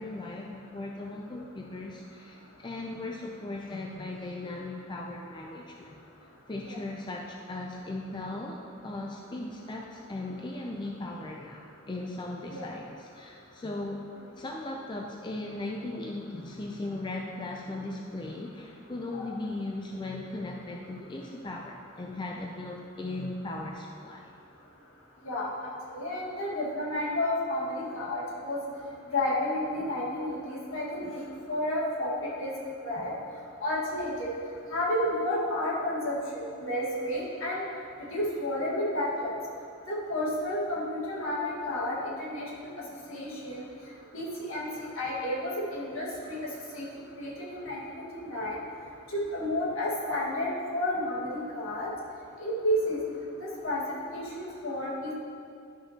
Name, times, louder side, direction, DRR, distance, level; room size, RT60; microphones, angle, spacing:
voice 1, 0.0-6.0 6.5-14.0 14.4-24.3, left 2 dB, 20° left, 0 dB, 0.4 m, -38 dB
voice 2, 25.2-25.7 25.9-28.6 29.1-31.2 31.5-32.1 32.4-32.5 32.8-33.1 33.6-34.3 34.7-37.6 38.1-39.3 39.9-42.5 43.1-43.6 44.1-46.4 46.7-46.9 47.2-48.6 49.1-51.9 52.4-53.0 53.4-53.8 54.1-55.1, left 1 dB, 65° left, -5 dB, 1.7 m, -31 dB
11.5 x 5.8 x 2.8 m, 2.4 s
head